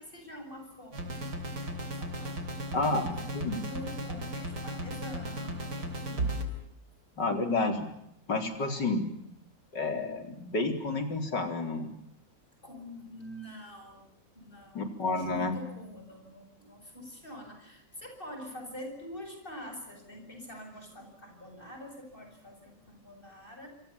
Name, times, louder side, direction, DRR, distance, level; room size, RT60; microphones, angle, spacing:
voice 1, 0.0-3.3 3.6-6.6 8.6-8.8 12.6-14.0 14.3-23.7, equal, 30° left, 4 dB, 8.2 m, -46 dB
sound 1, 0.9-6.4, right 1 dB, 75° right, 4.1 m, -36 dB
voice 2, 2.7-3.1 3.3-3.6 7.2-7.9 8.3-9.1 9.7-11.9 14.7-15.5, left 3 dB, 90° left, 6 dB, 4.8 m, -30 dB
27.0 x 26.5 x 7.2 m, 0.78 s
omnidirectional pair, 1.8 m